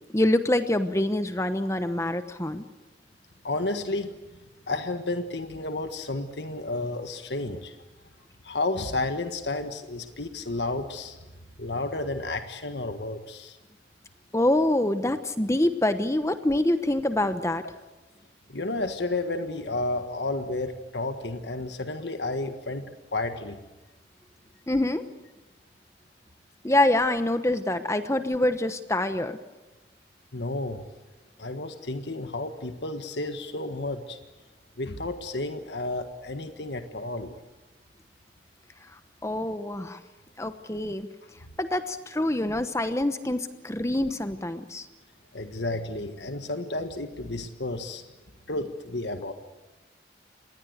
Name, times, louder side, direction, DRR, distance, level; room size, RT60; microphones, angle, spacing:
voice 1, 0.1-2.6 14.3-17.6 24.7-25.0 26.6-29.4 39.2-40.0 40.4-41.1 41.6-44.9, left 1 dB, 15° left, 9 dB, 1.0 m, -25 dB
voice 2, 3.4-4.1 4.7-7.8 8.4-11.2 11.6-13.6 18.5-22.8 23.1-23.6 30.3-30.8 31.4-34.2 34.8-37.3 45.3-48.0 48.5-49.3, left 2 dB, 70° left, 7 dB, 1.6 m, -31 dB
27.0 x 20.0 x 8.1 m, 1.1 s
head